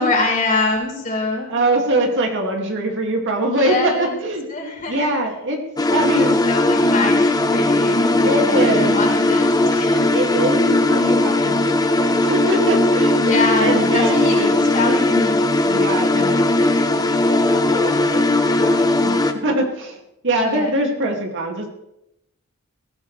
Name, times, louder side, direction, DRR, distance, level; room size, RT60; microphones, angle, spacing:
voice 1, 0.0-1.5 3.5-4.2 4.5-5.2 6.1-10.1 13.2-15.7 20.4-21.1, left 2 dB, 40° left, -1 dB, 4.4 m, -24 dB
voice 2, 1.5-4.4 4.9-5.6 5.9-6.4 8.2-9.0 10.1-13.2 13.6-14.5 14.8-15.0 15.6-19.2 19.4-20.0 20.2-21.7, right 1 dB, 60° right, 2 dB, 2.4 m, -23 dB
sound 1, 5.8-19.3, left 2 dB, 15° left, 1.0 m, -18 dB
18.5 x 15.0 x 3.4 m, 0.85 s
head